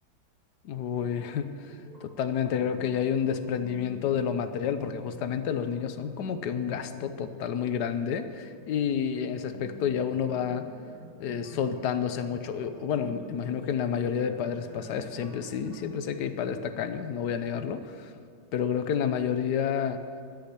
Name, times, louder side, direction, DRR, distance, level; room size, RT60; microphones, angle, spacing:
voice 1, 0.6-1.7 2.0-10.6 11.2-18.1 18.5-20.0, left 8 dB, 65° left, 9 dB, 1.3 m, -30 dB
sound 1, 0.7-15.8, equal, 65° right, 3.5 m, -48 dB
13.5 x 6.5 x 9.9 m, 2.2 s
omnidirectional pair, 2.1 m